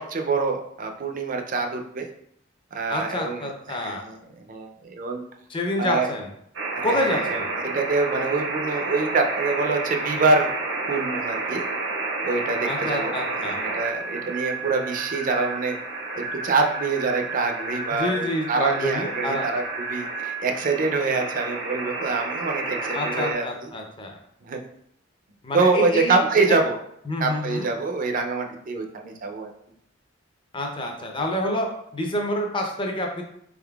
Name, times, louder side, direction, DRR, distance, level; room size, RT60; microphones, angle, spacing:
voice 1, 0.0-2.1 2.7-5.2 5.8-6.1 6.7-10.5 10.9-11.6 12.2-13.1 13.4-15.8 16.2-23.5 24.4-24.6 25.5-26.8 27.2-29.5, right 3 dB, 45° right, 4 dB, 0.4 m, -25 dB
voice 2, 2.9-4.0 5.5-6.3 6.8-7.5 12.6-13.6 17.9-19.5 22.9-24.2 25.4-26.6 27.1-27.7 30.5-31.7 31.9-33.2, left 1 dB, 25° left, 1 dB, 0.5 m, -28 dB
sound 1, 6.5-23.3, right 3 dB, 75° right, 0.7 m, -30 dB
3.9 x 3.6 x 2.3 m, 0.72 s
head